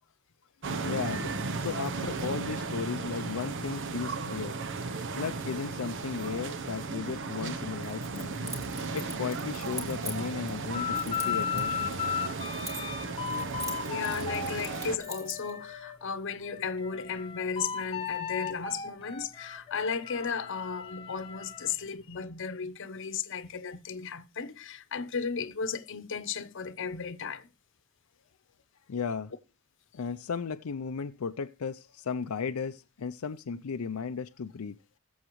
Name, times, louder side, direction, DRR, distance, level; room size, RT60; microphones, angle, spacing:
sound 1, 0.6-15.0, right 4 dB, 60° right, 0.8 m, -35 dB
voice 1, 0.8-1.3 1.6-4.6 5.1-8.4 8.9-11.9 28.9-29.3 29.9-34.8, left 5 dB, 85° left, 0.5 m, -35 dB
Keys jangling, 7.8-10.6 10.9-13.0 13.3-15.5, equal, 15° right, 2.4 m, -42 dB
sound 2, 10.7-16.0 16.4-21.7, left 8 dB, 25° left, 1.2 m, -36 dB
voice 2, 13.9-27.5, left 5 dB, 60° left, 0.9 m, -35 dB
21.0 x 7.2 x 3.1 m
head